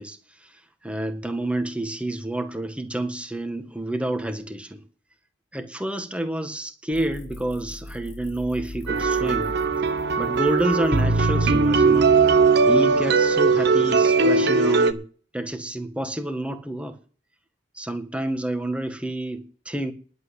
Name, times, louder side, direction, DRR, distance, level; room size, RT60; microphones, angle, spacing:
voice 1, 0.0-4.8 5.5-9.5 10.2-12.1 12.7-15.1 15.3-17.0 17.8-19.9, right 1 dB, 5° right, 1.7 m, -29 dB
sound 1, 6.9-12.5, left 1 dB, 45° left, 1.9 m, -39 dB
sound 2, 8.9-14.9, right 4 dB, 65° right, 1.2 m, -19 dB
11.0 x 7.9 x 8.2 m
head